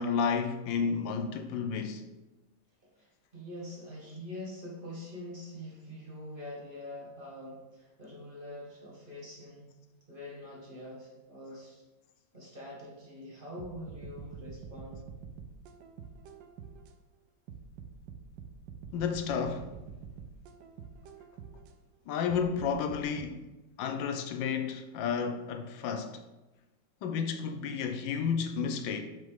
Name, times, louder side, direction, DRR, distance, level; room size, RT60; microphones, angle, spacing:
voice 1, 0.0-2.0 18.9-19.7 22.1-23.5 23.8-26.2 27.0-29.0, left 6 dB, 85° left, 1.3 m, -31 dB
voice 2, 2.8-9.7 10.1-11.8 12.3-15.1, left 1 dB, 30° right, 1.7 m, -44 dB
sound 1, 13.6-16.9 17.5-21.7 22.3-23.3, right 6 dB, 80° right, 1.3 m, -46 dB
6.2 x 5.4 x 3.6 m
omnidirectional pair, 2.0 m